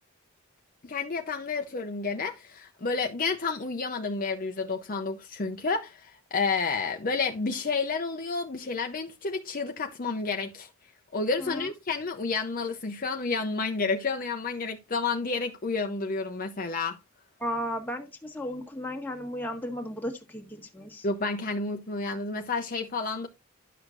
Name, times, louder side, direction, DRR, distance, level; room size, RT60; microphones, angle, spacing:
voice 1, 0.8-10.7 11.1-17.0 21.0-23.3, left 4 dB, 40° left, 0.7 m, -30 dB
voice 2, 17.4-21.1, equal, 10° left, 1.4 m, -35 dB
11.0 x 6.4 x 2.5 m
head